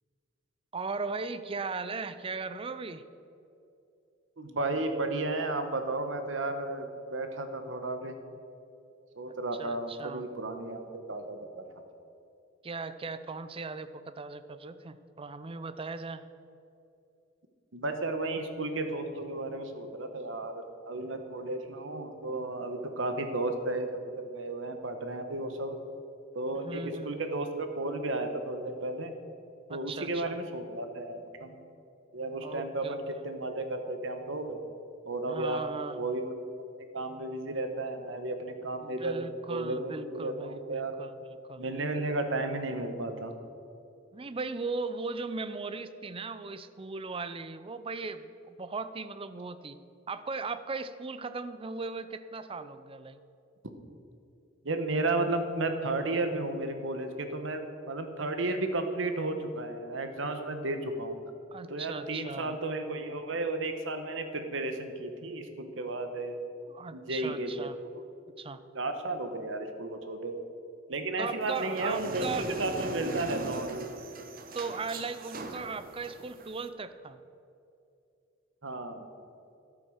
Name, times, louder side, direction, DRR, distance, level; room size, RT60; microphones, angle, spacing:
voice 1, 0.7-3.0 9.3-10.3 12.6-16.2 26.5-27.2 29.7-30.4 32.4-33.2 35.3-36.0 38.8-41.2 41.5-41.7 44.1-49.8 50.1-53.2 61.5-62.6 66.7-67.8 68.4-68.6 71.2-72.5 74.5-77.2, right 4 dB, 30° right, 12 dB, 0.5 m, -38 dB
voice 2, 4.4-8.1 9.2-11.6 17.7-25.8 26.3-29.2 29.7-31.6 32.1-34.6 35.0-35.6 35.9-36.3 36.9-41.0 41.6-43.3 54.6-61.2 61.7-66.4 66.9-67.9 68.7-70.4 70.9-74.0 78.6-79.1, right 2 dB, 70° right, 7 dB, 1.2 m, -33 dB
sound 1, 71.4-76.7, right 3 dB, 50° right, 1.0 m, -40 dB
12.0 x 8.8 x 6.5 m, 2.6 s
head